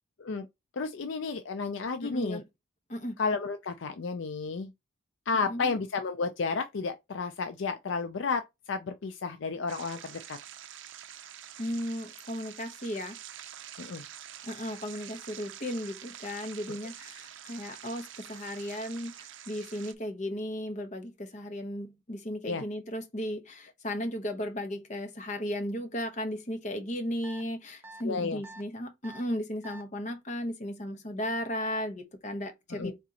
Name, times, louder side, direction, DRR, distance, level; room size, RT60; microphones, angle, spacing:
voice 1, 0.7-2.4 3.2-4.7 5.3-10.4 13.8-14.0 16.7-16.8 22.4-22.6 28.0-28.4 32.7-32.9, left 4 dB, 60° left, 0.4 m, -32 dB
voice 2, 2.0-2.4 2.9-3.2 5.3-5.8 11.6-13.2 14.4-33.0, equal, 35° left, 1.0 m, -35 dB
sound 1, 9.7-19.9, right 10 dB, 60° right, 0.5 m, -47 dB
sound 2, 27.2-27.4 27.8-28.0 28.4-28.6 29.0-29.2 29.6-29.8, right 2 dB, 10° right, 0.6 m, -46 dB
4.9 x 3.6 x 2.8 m
head